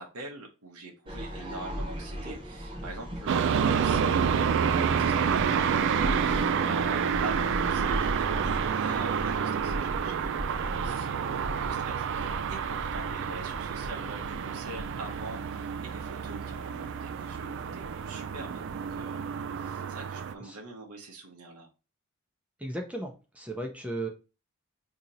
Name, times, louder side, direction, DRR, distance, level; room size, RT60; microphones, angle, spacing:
voice 1, 0.0-19.3 19.6-21.7, right 2 dB, 90° right, 0 dB, 0.8 m, -43 dB
sound 1, 1.1-19.0, equal, 25° right, 1.0 m, -39 dB
sound 2, 3.3-20.3, right 7 dB, 55° right, 0.3 m, -29 dB
voice 2, 22.6-24.1, right 1 dB, 5° right, 1 dB, 0.5 m, -35 dB
2.8 x 2.8 x 3.8 m, 0.31 s
head